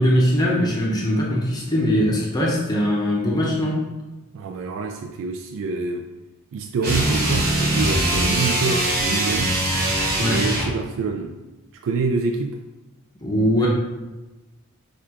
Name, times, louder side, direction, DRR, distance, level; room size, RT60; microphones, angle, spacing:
voice 1, 0.0-3.8 10.2-10.5 13.2-13.7, equal, 20° left, -3 dB, 0.6 m, -21 dB
voice 2, 4.3-6.1 6.5-9.6 10.2-11.4 11.8-12.6, right 4 dB, 60° right, 3 dB, 0.3 m, -26 dB
sound 1, 6.8-10.8, right 1 dB, 45° right, 1.0 m, -22 dB
6.5 x 2.4 x 2.8 m, 1.1 s
head